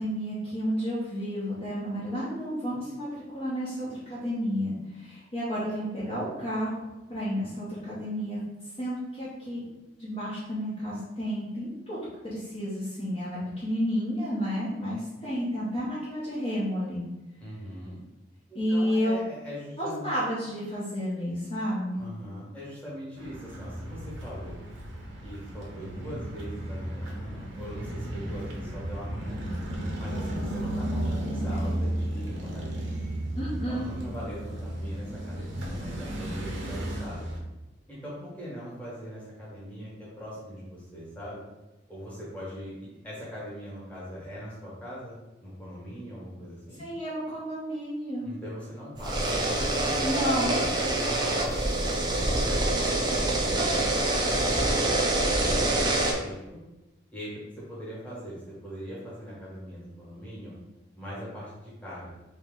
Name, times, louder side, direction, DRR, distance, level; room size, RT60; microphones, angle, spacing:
voice 1, 0.0-6.8 7.1-8.4 8.8-9.7 10.0-17.0 18.5-19.2 19.8-22.1 33.3-33.9 46.8-48.3 50.0-50.5, equal, 30° left, -10 dB, 0.9 m, -31 dB
voice 2, 17.4-18.0 18.5-20.1 22.0-24.6 25.2-29.5 30.0-33.0 33.7-37.2 37.9-41.4 41.9-46.8 48.2-49.3 49.7-49.9 50.4-51.7 52.1-55.2 55.4-56.6 57.1-60.5 61.0-62.1, equal, 5° left, -7 dB, 1.3 m, -41 dB
sound 1, 23.2-37.4, right 1 dB, 80° right, 0.8 m, -34 dB
sound 2, 49.0-56.1, right 2 dB, 20° right, 0.4 m, -26 dB
3.0 x 3.0 x 3.7 m, 1.0 s
head